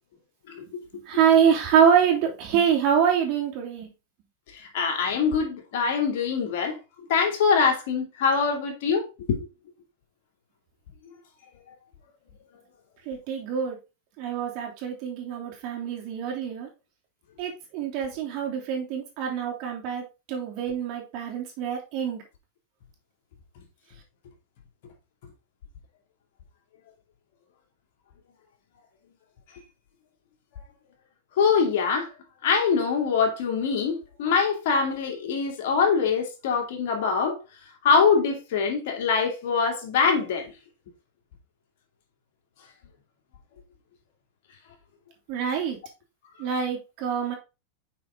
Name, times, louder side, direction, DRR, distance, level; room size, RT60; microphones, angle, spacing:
voice 1, 0.5-0.8 4.7-6.8 7.1-9.0 9.3-9.5 31.4-32.1 32.4-37.4 37.8-40.5, left 5 dB, 65° left, 2.4 m, -23 dB
voice 2, 1.1-3.9 13.0-13.8 14.2-16.7 17.4-22.2 45.3-45.8 46.4-47.3, right 8 dB, 50° right, 3.0 m, -25 dB
6.1 x 5.5 x 3.7 m
hypercardioid pair, 120°, 0 cm